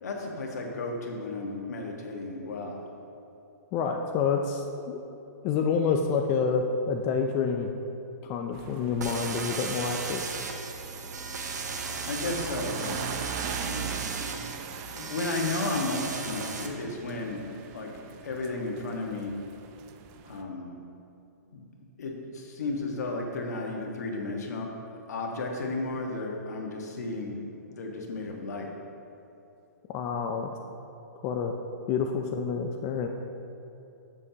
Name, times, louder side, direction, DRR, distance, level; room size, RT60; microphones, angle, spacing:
voice 1, 0.0-2.8 12.1-13.2 13.6-13.9 14.9-17.4 17.7-17.9 18.2-19.3 20.2-20.7 21.5-21.6 22.0-27.4 27.7-28.7, left 2 dB, 75° left, 1 dB, 1.5 m, -33 dB
voice 2, 3.7-5.0 5.4-7.7 8.2-10.2 29.9-30.5 31.2-31.6 31.9-33.1, left 5 dB, 30° left, 4 dB, 0.5 m, -28 dB
sound 1, 8.5-20.4, right 7 dB, 30° right, 0.5 m, -41 dB
sound 2, 9.0-16.7, right 4 dB, 90° right, 1.0 m, -36 dB
10.5 x 7.4 x 2.9 m, 2.8 s
hypercardioid pair, 145°, 9 cm